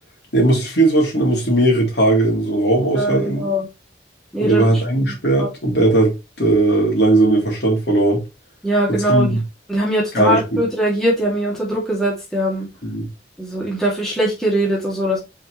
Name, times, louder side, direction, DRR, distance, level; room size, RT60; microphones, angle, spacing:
voice 1, 0.3-3.5 4.4-8.2 9.1-9.4 10.1-10.4 12.8-13.1, right 2 dB, 65° left, 3.4 m, -17 dB
voice 2, 2.9-3.7 4.3-5.5 8.6-9.4 9.7-12.7 13.4-15.2, right 1 dB, 5° left, 2.7 m, -21 dB
5.5 x 5.4 x 3.3 m
head